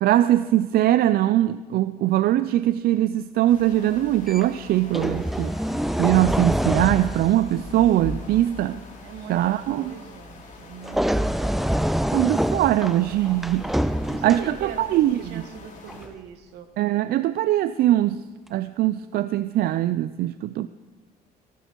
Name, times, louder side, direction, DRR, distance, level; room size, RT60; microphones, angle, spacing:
voice 1, 0.0-5.6 6.0-8.8 9.3-9.9 12.1-13.7 14.2-15.4 16.8-18.2 18.5-20.7, right 13 dB, 65° right, 14 dB, 0.4 m, -21 dB
sound 1, 3.5-16.1, left 3 dB, 50° left, 3.7 m, -45 dB
sound 2, 4.3-4.4 4.9-8.4 10.8-14.9 15.9-16.1, equal, ahead, 0.4 m, -26 dB
voice 2, 9.0-12.3 13.4-13.7 14.0-16.7, right 7 dB, 85° right, 8 dB, 1.6 m, -42 dB
18.5 x 12.5 x 4.6 m, 1.3 s
cardioid pair, 110°, 17 cm